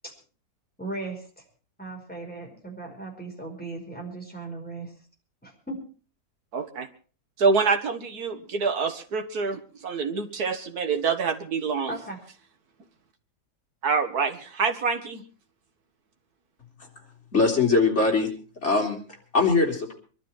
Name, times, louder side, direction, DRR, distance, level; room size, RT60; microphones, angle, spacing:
voice 1, 0.8-1.4 1.8-4.9 5.4-5.8 11.9-12.2, right 2 dB, 5° left, -1 dB, 5.2 m, -37 dB
voice 2, 6.5-6.9 7.4-12.0 13.8-15.2, right 5 dB, 70° right, 7 dB, 2.1 m, -26 dB
voice 3, 17.3-18.3 18.6-19.0 19.3-19.9, left 3 dB, 45° left, 1 dB, 3.7 m, -21 dB
23.5 x 12.0 x 4.4 m, 0.37 s
omnidirectional pair, 1.7 m